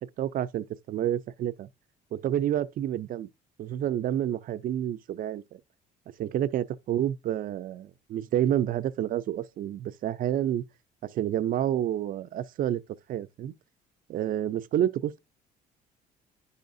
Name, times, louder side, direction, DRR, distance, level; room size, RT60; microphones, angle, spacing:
voice 1, 0.2-1.7 2.1-3.3 3.6-5.6 6.2-10.6 11.0-12.8 13.1-13.5 14.1-15.2, right 11 dB, 55° right, 0.5 m, -29 dB
10.5 x 5.6 x 2.6 m
cardioid pair, 110°, 17 cm